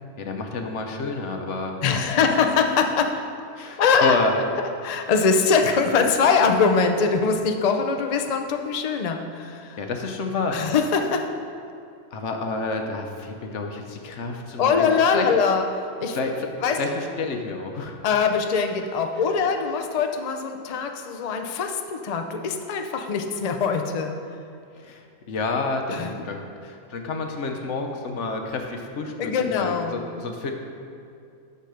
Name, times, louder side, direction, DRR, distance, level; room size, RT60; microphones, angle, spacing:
voice 1, 0.2-1.8 3.5-4.3 9.8-10.7 12.1-15.3 16.1-16.5 16.8-18.0 24.8-30.5, left 3 dB, 55° left, 3 dB, 1.1 m, -29 dB
voice 2, 1.8-3.2 3.8-4.2 4.8-9.8 10.5-11.3 14.6-16.2 16.6-16.8 18.0-24.2 25.9-26.1 29.2-30.0, left 5 dB, 80° left, 5 dB, 0.3 m, -22 dB
9.4 x 6.4 x 5.0 m, 2.5 s
omnidirectional pair, 1.6 m